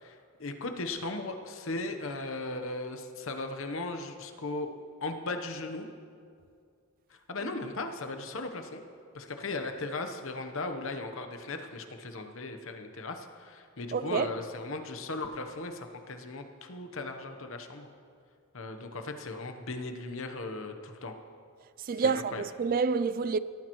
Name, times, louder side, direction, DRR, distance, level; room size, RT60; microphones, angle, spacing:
voice 1, 0.0-4.7 5.0-5.9 7.1-8.8 9.1-17.9 18.5-21.1 22.0-22.4, left 2 dB, 60° left, 1.0 m, -37 dB
voice 2, 13.9-14.3 21.8-23.4, right 5 dB, 40° right, 0.3 m, -28 dB
18.0 x 13.5 x 3.1 m
head